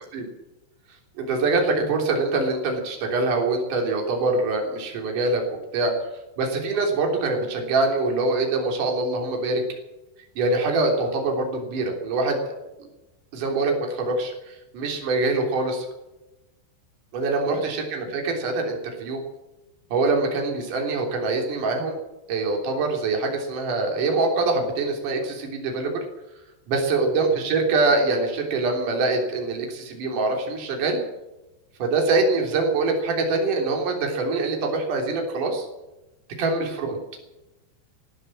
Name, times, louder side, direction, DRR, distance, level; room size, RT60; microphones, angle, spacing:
voice 1, 1.2-5.4 5.7-6.0 6.4-9.6 10.4-12.6 13.3-15.9 17.1-19.2 19.9-22.0 22.3-26.1 26.7-31.0 31.8-35.7 36.4-37.0, right 3 dB, 45° right, 2 dB, 4.4 m, -24 dB
17.5 x 10.5 x 7.5 m, 0.99 s
omnidirectional pair, 5.7 m